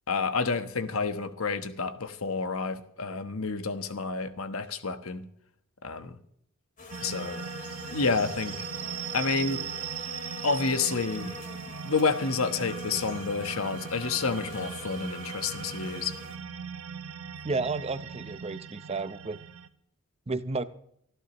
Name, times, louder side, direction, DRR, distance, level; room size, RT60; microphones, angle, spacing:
voice 1, 0.1-5.2 5.8-6.2 7.0-7.4 7.8-8.7 9.1-9.7 10.4-11.3 11.8-16.2, left 4 dB, 85° left, 10 dB, 1.2 m, -29 dB
sound 1, 6.8-16.4, left 2 dB, 40° left, 2.7 m, -43 dB
sound 2, 6.9-19.7, right 8 dB, 85° right, 0.9 m, -39 dB
voice 2, 17.4-19.4 20.3-20.6, right 3 dB, 30° right, 12 dB, 0.7 m, -32 dB
24.0 x 13.5 x 3.0 m, 0.68 s
head